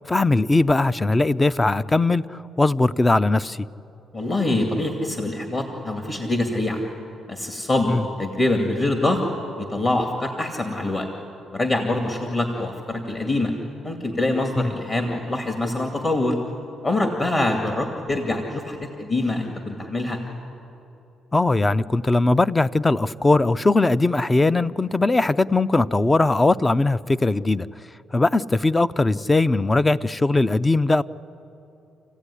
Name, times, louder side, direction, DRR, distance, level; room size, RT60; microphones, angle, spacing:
voice 1, 0.1-3.7 7.9-8.0 14.6-14.7 21.3-27.7 28.1-31.0, left 2 dB, 20° left, 0.5 m, -20 dB
voice 2, 4.1-6.8 7.3-9.2 9.6-11.1 11.5-13.5 13.8-16.4 16.8-20.2, left 2 dB, 35° left, 2.4 m, -24 dB
28.0 x 15.5 x 10.0 m
cardioid pair, 90°, 0 cm